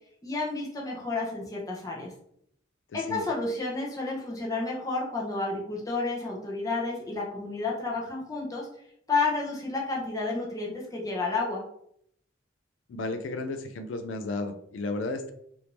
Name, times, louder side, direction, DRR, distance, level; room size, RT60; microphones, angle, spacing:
voice 1, 0.2-2.1 2.9-8.7 9.1-11.6, left 3 dB, 20° left, -3 dB, 0.8 m, -31 dB
voice 2, 2.9-3.3 12.9-15.3, left 2 dB, 90° left, 8 dB, 0.4 m, -33 dB
3.3 x 2.6 x 2.9 m, 0.70 s
head